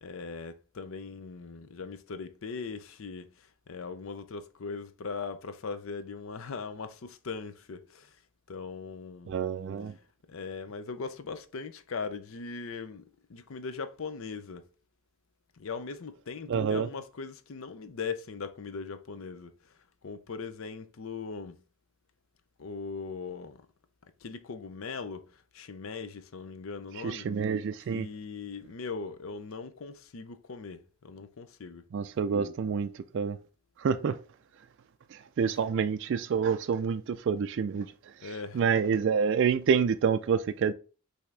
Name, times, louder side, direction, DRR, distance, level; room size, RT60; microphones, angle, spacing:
voice 1, 0.0-8.2 8.5-9.4 9.9-10.0 10.3-14.7 15.6-19.5 20.0-21.6 22.6-23.7 24.2-27.3 27.9-31.8 38.2-38.6, left 4 dB, 65° left, 0.5 m, -40 dB
voice 2, 9.3-9.9 16.5-16.9 27.0-28.1 31.9-33.4 33.8-34.2 35.4-37.9 38.5-40.7, right 6 dB, 55° right, 0.3 m, -27 dB
5.8 x 2.8 x 3.2 m
head